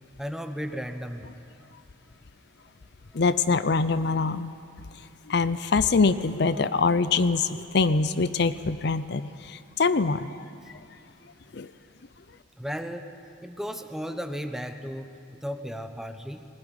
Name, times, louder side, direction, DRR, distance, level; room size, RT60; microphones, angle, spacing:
voice 1, 0.2-1.3 1.6-1.7 12.6-13.1 13.4-15.1 15.4-16.5, equal, ahead, 6 dB, 1.1 m, -34 dB
voice 2, 3.1-4.5 5.3-10.4 11.5-11.7, left 4 dB, 60° left, 13 dB, 0.6 m, -24 dB
20.5 x 20.0 x 9.9 m, 2.6 s
head